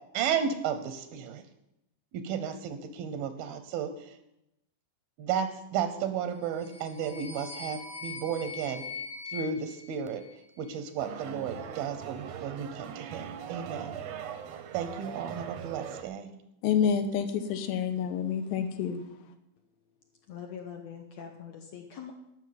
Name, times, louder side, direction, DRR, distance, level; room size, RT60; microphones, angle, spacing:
voice 1, 0.1-1.4 2.1-4.2 5.2-8.8 9.3-10.2 10.6-13.9 14.7-16.3, right 7 dB, 85° right, 2.8 m, -33 dB
sound 1, 6.4-10.7, left 4 dB, 50° left, 1.1 m, -42 dB
sound 2, 11.0-16.0, right 8 dB, 70° right, 1.7 m, -41 dB
voice 2, 16.6-19.0, left 7 dB, 80° left, 2.9 m, -28 dB
voice 3, 20.3-22.1, left 7 dB, 65° left, 1.9 m, -43 dB
12.5 x 6.3 x 9.4 m
omnidirectional pair, 4.1 m